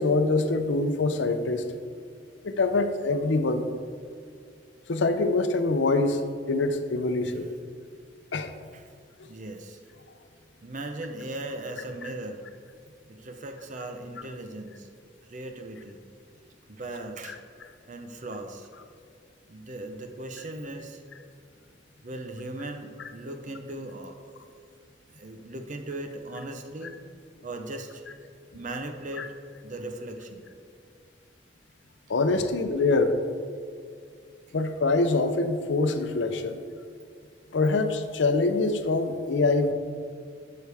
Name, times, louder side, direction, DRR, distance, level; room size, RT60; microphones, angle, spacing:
voice 1, 0.0-1.7 2.4-3.6 4.9-6.2 6.5-7.5 8.3-8.5 29.2-29.3 32.1-33.1 34.5-36.6 37.5-39.7, left 3 dB, 80° left, 8 dB, 0.6 m, -24 dB
voice 2, 9.3-9.8 10.6-12.4 13.1-14.9 15.3-16.0 16.7-17.4 17.9-18.7 19.5-21.0 22.0-24.5 25.1-27.0 27.4-28.0 28.5-29.3 29.6-30.4 32.3-33.0 33.5-33.7 36.3-36.4, right 2 dB, 45° right, 5 dB, 0.7 m, -38 dB
11.0 x 6.7 x 3.4 m, 2.2 s
head